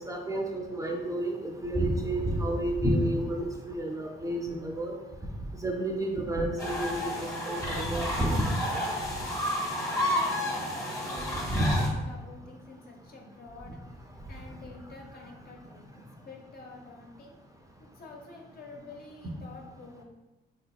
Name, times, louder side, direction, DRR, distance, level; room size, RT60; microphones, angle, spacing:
voice 1, 0.1-4.9 5.6-7.1 7.4-8.5 11.5-11.9, right 1 dB, 15° right, 0 dB, 0.4 m, -29 dB
sound 1, 6.6-11.9, left 1 dB, 15° left, 0.7 m, -31 dB
voice 2, 10.0-10.8 11.0-13.8 14.3-17.3 17.8-20.0, left 3 dB, 50° left, 0 dB, 0.7 m, -48 dB
3.3 x 2.8 x 2.2 m, 1.0 s
cardioid pair, 90°, 20 cm